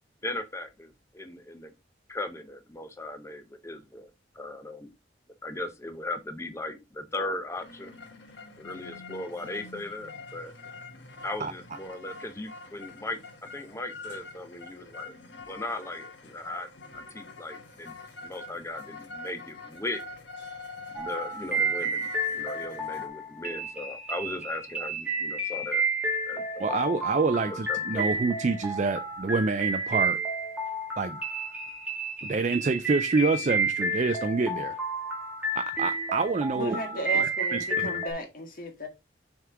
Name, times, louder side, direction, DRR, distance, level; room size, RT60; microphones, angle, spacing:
voice 1, 0.2-1.7 2.1-4.1 4.3-4.9 5.4-7.9 8.6-10.5 11.2-13.2 13.5-15.2 15.5-16.7 16.9-17.9 18.2-20.0 20.9-25.8 26.2-26.8 27.4-28.0, left 2 dB, 15° left, 0.7 m, -37 dB
sound 1, 7.5-23.1, left 3 dB, 75° left, 1.2 m, -45 dB
sound 2, 21.0-38.1, right 2 dB, 5° right, 1.8 m, -31 dB
voice 2, 26.6-30.2 31.0-31.2 32.2-34.8 35.6-36.8 37.1-38.0, right 4 dB, 40° right, 0.4 m, -27 dB
voice 3, 36.5-38.9, equal, 45° left, 1.7 m, -35 dB
6.2 x 3.6 x 4.6 m
head